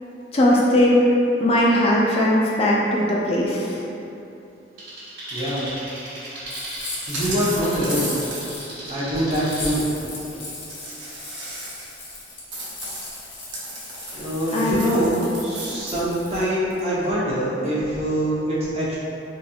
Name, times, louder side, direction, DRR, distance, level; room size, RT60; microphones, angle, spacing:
voice 1, 0.3-0.9 1.4-3.7 8.6-8.9 10.3-10.4 14.5-14.9, left 1 dB, 35° left, -4 dB, 0.3 m, -20 dB
sound 1, 4.8-9.7, right 1 dB, 55° right, 1.5 m, -37 dB
voice 2, 5.3-5.6 7.1-8.1 8.9-9.8 14.2-19.0, equal, 35° right, -8 dB, 0.8 m, -24 dB
sound 2, 6.5-8.7 9.3-16.8, left 2 dB, 80° left, 0.9 m, -37 dB
sound 3, 7.1-8.7 10.1-10.2 10.7-12.0 12.5-16.0, right 2 dB, 75° right, 0.8 m, -34 dB
4.0 x 2.8 x 2.4 m, 2.9 s
head